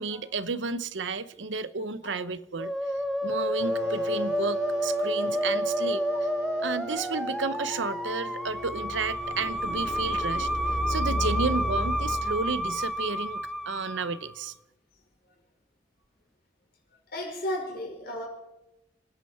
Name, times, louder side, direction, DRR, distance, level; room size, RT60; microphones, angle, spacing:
voice 1, 0.0-2.7 3.2-6.0 6.6-10.5 10.9-14.5, right 4 dB, 90° right, 0.8 m, -32 dB
Musical instrument, 2.6-14.4, equal, ahead, 0.8 m, -30 dB
sound 1, 3.6-12.0, left 1 dB, 65° right, 4.2 m, -40 dB
sound 2, 8.5-13.2, left 1 dB, 85° left, 4.9 m, -34 dB
voice 2, 17.1-18.3, left 1 dB, 55° left, 5.3 m, -33 dB
28.5 x 10.0 x 4.4 m
head